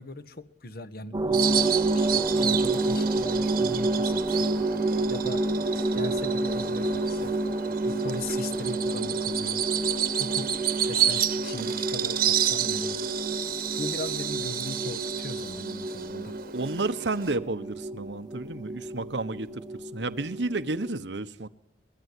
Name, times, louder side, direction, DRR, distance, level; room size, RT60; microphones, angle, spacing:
voice 1, 0.0-4.5 5.1-5.4 5.9-7.4 7.8-9.6 10.2-13.0 13.8-16.3, left 2 dB, 60° left, 12 dB, 1.6 m, -39 dB
sound 1, 1.1-20.9, right 2 dB, 25° right, 1.0 m, -29 dB
Bird vocalization bird call bird song, 1.3-17.4, right 10 dB, 55° right, 1.4 m, -31 dB
voice 2, 16.5-19.6 19.9-21.5, right 2 dB, 80° right, 11 dB, 1.2 m, -31 dB
24.0 x 21.0 x 10.0 m, 0.79 s
head